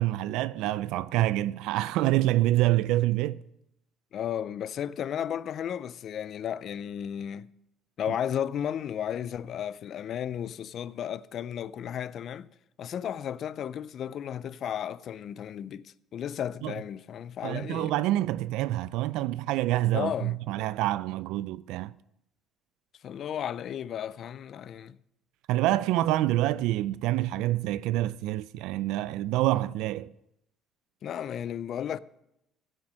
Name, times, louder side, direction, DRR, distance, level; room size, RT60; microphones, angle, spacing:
voice 1, 0.0-3.4 16.6-16.7 17.4-21.9 25.5-30.1, right 15 dB, 80° right, 0.3 m, -27 dB
voice 2, 4.1-7.5 8.0-12.5 12.8-17.9 19.9-20.4 23.0-25.0 31.0-32.0, left 9 dB, 45° left, 0.4 m, -34 dB
15.5 x 6.1 x 6.3 m
cardioid pair, 160°, 0 cm